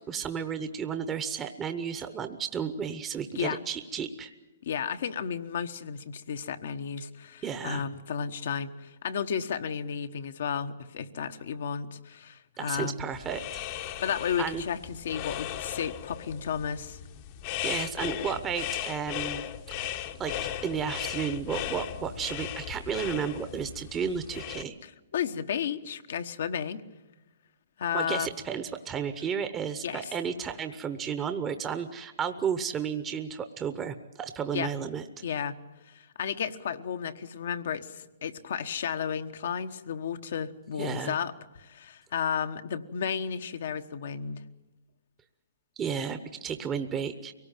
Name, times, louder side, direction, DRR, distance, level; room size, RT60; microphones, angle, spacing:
voice 1, 0.1-4.3 7.4-7.9 12.6-13.4 14.4-14.6 17.6-19.9 20.2-20.3 20.6-24.8 27.9-35.0 40.8-41.2 45.8-47.3, right 7 dB, 20° right, 9 dB, 1.0 m, -33 dB
voice 2, 4.6-13.0 14.0-17.0 24.8-26.8 27.8-28.3 29.8-30.1 34.5-34.7 35.2-35.5 35.9-44.4, left 7 dB, 65° left, 9 dB, 1.2 m, -33 dB
sound 1, 13.1-24.6, left 11 dB, 45° left, 1.0 m, -37 dB
23.5 x 18.0 x 9.1 m, 1.1 s
hypercardioid pair, 130°, 0 cm